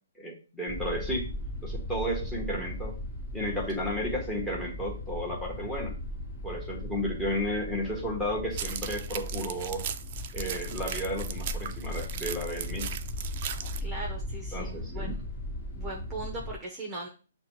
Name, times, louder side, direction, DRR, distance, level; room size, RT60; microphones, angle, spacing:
voice 1, 0.2-1.3 1.6-3.0 3.3-5.9 6.4-9.8 10.3-13.0 14.5-15.2, equal, 5° left, -1 dB, 1.1 m, -33 dB
sound 1, 0.7-16.6, left 1 dB, 35° left, 1.5 m, -37 dB
sound 2, 8.5-13.8, right 9 dB, 40° right, 0.4 m, -38 dB
voice 2, 13.8-15.2 15.8-17.1, right 2 dB, 10° right, -3 dB, 0.8 m, -39 dB
6.5 x 2.2 x 3.1 m, 0.36 s
hypercardioid pair, 150°, 0 cm